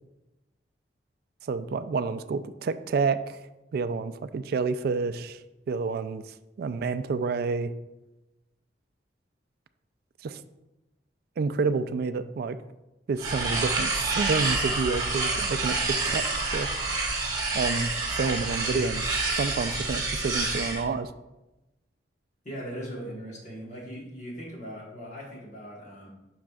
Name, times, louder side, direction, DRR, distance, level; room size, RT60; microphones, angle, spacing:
voice 1, 1.4-3.5 3.7-5.4 5.7-6.2 6.6-7.7 10.2-10.4 11.4-12.6 13.1-16.7 17.5-19.1 19.3-21.1, right 4 dB, 60° right, 12 dB, 0.3 m, -29 dB
sound 1, 13.2-20.8, right 3 dB, 20° right, 1.1 m, -28 dB
voice 2, 22.4-26.1, equal, 45° left, -3 dB, 1.3 m, -39 dB
7.4 x 6.0 x 2.4 m, 1.0 s
head